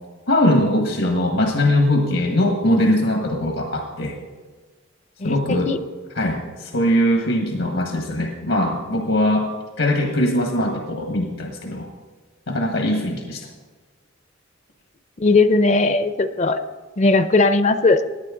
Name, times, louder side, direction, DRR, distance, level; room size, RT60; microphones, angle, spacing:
voice 1, 0.3-4.1 5.2-5.7 6.1-9.5 9.8-11.9 12.5-13.5, left 1 dB, 80° left, 2 dB, 1.5 m, -21 dB
voice 2, 5.2-5.8 15.2-16.6 17.0-18.0, left 3 dB, 35° left, 11 dB, 0.5 m, -18 dB
19.0 x 9.5 x 3.8 m, 1.4 s
head